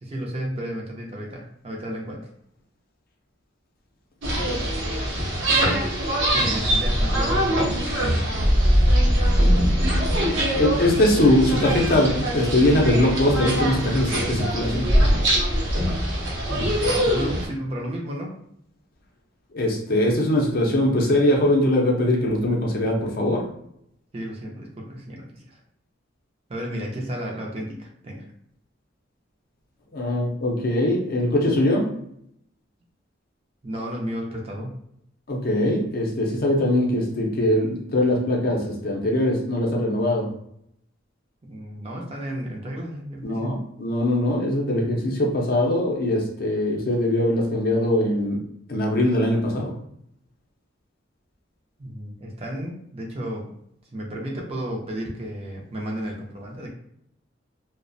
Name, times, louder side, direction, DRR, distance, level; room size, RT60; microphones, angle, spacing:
voice 1, 0.0-2.3 6.3-7.6 8.0-8.2 17.0-18.3 24.1-25.6 26.5-28.3 33.6-34.8 41.5-43.7 51.8-53.5 53.9-56.7, equal, 30° right, -1 dB, 0.4 m, -32 dB
sound 1, 4.2-17.5, equal, 75° right, 0.8 m, -22 dB
voice 2, 10.5-14.9 19.5-23.4 29.9-31.9 35.3-40.3 43.2-48.4 48.7-49.8, left 1 dB, 50° left, 0 dB, 0.5 m, -21 dB
2.3 x 2.1 x 2.5 m, 0.73 s
head